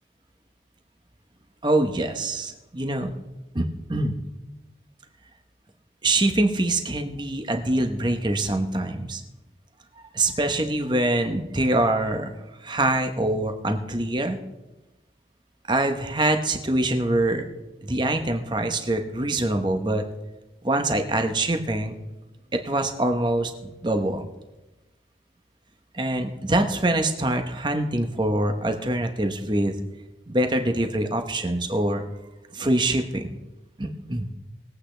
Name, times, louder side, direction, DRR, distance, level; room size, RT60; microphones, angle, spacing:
voice 1, 1.6-3.1 3.5-4.1 6.0-9.2 10.1-12.3 12.6-14.4 15.7-17.4 17.9-20.0 20.6-22.0 22.5-24.2 25.9-29.8 30.3-32.0 32.5-33.4 33.8-34.3, right 1 dB, 25° right, 6 dB, 1.0 m, -24 dB
21.0 x 8.4 x 3.3 m, 1.0 s
head